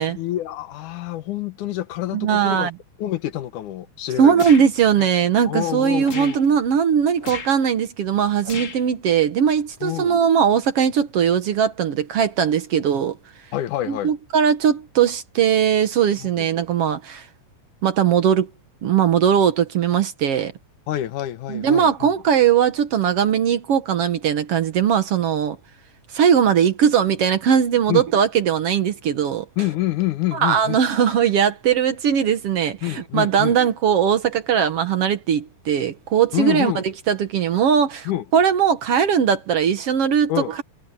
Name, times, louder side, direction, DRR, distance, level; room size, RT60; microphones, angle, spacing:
voice 1, 0.1-2.7 3.0-4.4 5.0-5.1 5.5-6.4 9.8-10.2 13.5-14.1 16.2-16.5 20.9-22.1 27.9-28.1 29.6-30.8 32.8-33.6 36.3-36.8 38.1-38.2 40.3-40.5, left 14 dB, 80° left, 2.5 m, -27 dB
voice 2, 2.1-2.7 4.2-13.2 13.9-17.3 17.8-18.5 18.8-20.5 21.5-25.6 26.1-29.5 30.3-40.6, right 8 dB, 60° right, 1.9 m, -19 dB
sound 1, 4.4-4.7 6.0-6.4 7.2-7.5 8.4-8.8, left 5 dB, 35° left, 1.4 m, -33 dB
omnidirectional pair, 3.5 m